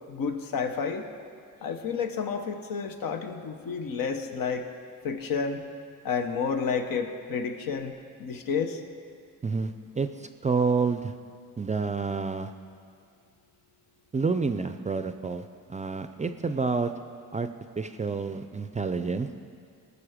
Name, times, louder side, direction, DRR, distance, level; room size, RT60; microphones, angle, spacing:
voice 1, 0.1-1.1 1.6-4.6 5.0-5.6 6.0-7.9 8.2-8.8, left 5 dB, 80° left, 6 dB, 1.1 m, -30 dB
voice 2, 9.4-11.1 11.6-12.5 14.1-15.4 15.7-16.9 17.3-17.5 17.8-19.3, right 4 dB, 20° right, 9 dB, 0.4 m, -28 dB
19.0 x 6.8 x 5.0 m, 2.3 s
cardioid pair, 110°, 34 cm